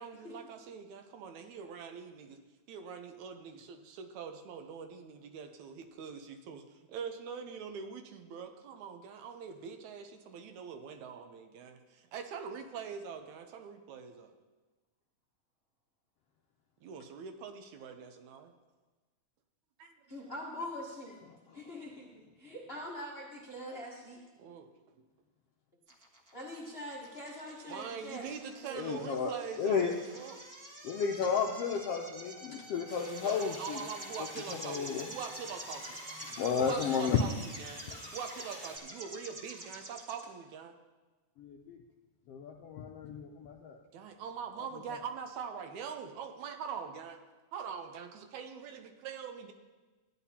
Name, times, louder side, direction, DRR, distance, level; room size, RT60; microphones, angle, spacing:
voice 1, 0.0-2.4 2.7-14.3 16.8-18.5 19.8-20.1 24.4-24.7 27.7-29.9 30.1-30.4 33.2-36.0 36.6-37.3 37.6-37.9 38.1-40.7 43.9-47.2 47.5-49.5, right 6 dB, 80° right, 6 dB, 2.1 m, -43 dB
voice 2, 20.1-21.2 21.5-24.2 26.3-28.3 28.6-29.1, left 1 dB, 50° left, -4 dB, 0.7 m, -43 dB
sound 1, 25.9-40.2, right 1 dB, 40° right, 1.5 m, -47 dB
voice 3, 28.8-29.3 29.6-29.9 30.8-33.8 34.6-35.1 36.4-37.2 41.4-41.8 42.3-43.8, left 6 dB, 80° left, 1 dB, 1.4 m, -32 dB
sound 2, 32.9-38.8, equal, 15° left, 1.0 m, -50 dB
15.0 x 10.0 x 2.8 m, 1.2 s
omnidirectional pair, 3.3 m